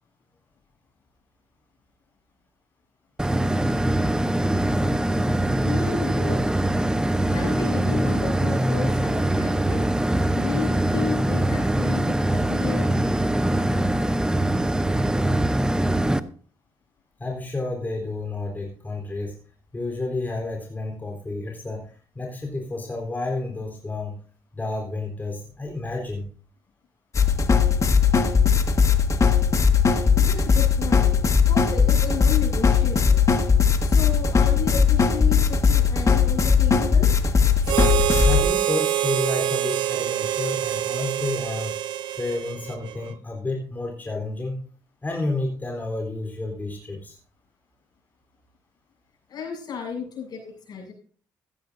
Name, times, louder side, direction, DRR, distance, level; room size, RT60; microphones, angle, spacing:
sound 1, 3.2-16.2, right 1 dB, 10° right, 0.8 m, -23 dB
voice 1, 5.3-6.4 7.3-10.0 10.3-12.9 30.2-31.1 31.5-33.2 33.8-37.1 49.3-50.9, left 6 dB, 60° left, 0 dB, 7.4 m, -33 dB
voice 2, 17.2-19.4 19.7-24.2 24.5-26.3 38.2-41.7 42.2-44.6 45.0-47.2, left 2 dB, 25° left, 0 dB, 3.7 m, -30 dB
sound 2, 27.1-38.4, left 6 dB, 45° left, 1.6 m, -19 dB
Harmonica, 37.6-43.1, right 12 dB, 80° right, 0.8 m, -25 dB
15.0 x 14.0 x 2.7 m, 0.41 s
cardioid pair, 75°, 8 cm